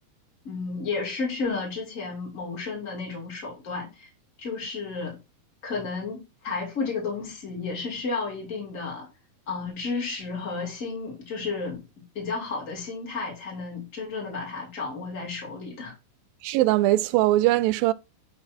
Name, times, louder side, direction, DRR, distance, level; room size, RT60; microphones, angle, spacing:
voice 1, 0.4-4.1 4.4-5.2 5.6-9.1 9.5-11.8 12.1-15.9, left 4 dB, 25° left, 3.0 m, -32 dB
voice 2, 16.4-17.9, right 16 dB, 85° right, 2.3 m, -21 dB
10.5 x 4.1 x 4.3 m
omnidirectional pair, 4.1 m